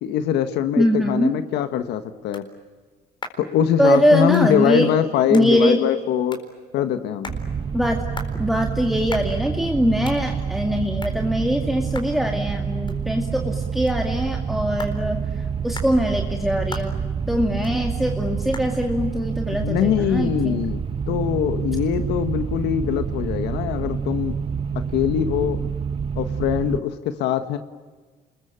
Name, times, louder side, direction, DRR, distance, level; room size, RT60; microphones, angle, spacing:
voice 1, 0.0-2.5 3.4-6.4 6.7-7.3 19.6-20.8 21.1-24.3 24.7-25.6 26.1-27.6, left 10 dB, 85° left, 10 dB, 1.4 m, -22 dB
voice 2, 0.8-1.3 3.8-4.9 5.3-5.8 7.7-8.0 8.4-17.0 17.3-20.6, equal, ahead, 1 dB, 2.3 m, -22 dB
sound 1, 1.4-20.7, left 3 dB, 25° left, 4.2 m, -44 dB
sound 2, 7.3-26.8, right 6 dB, 35° right, 1.3 m, -27 dB
28.0 x 21.5 x 9.0 m, 1.4 s
cardioid pair, 110°, 17 cm